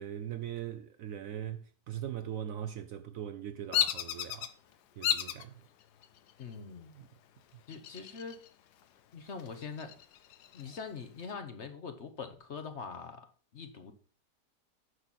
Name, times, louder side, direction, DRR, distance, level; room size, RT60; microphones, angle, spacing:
voice 1, 0.0-4.5 5.0-5.6 6.9-7.1, right 10 dB, 65° right, 0.8 m, -40 dB
Bird vocalization bird call bird song, 3.7-4.5 5.0-5.4 6.0-6.5 7.7-8.5 8.8-8.9 9.4-10.8, left 10 dB, 75° left, 1.2 m, -32 dB
voice 2, 6.4-6.9 7.7-8.4 9.1-9.9 10.5-13.2 13.5-13.9, left 5 dB, 50° left, 1.1 m, -43 dB
9.8 x 6.1 x 4.1 m
omnidirectional pair, 1.8 m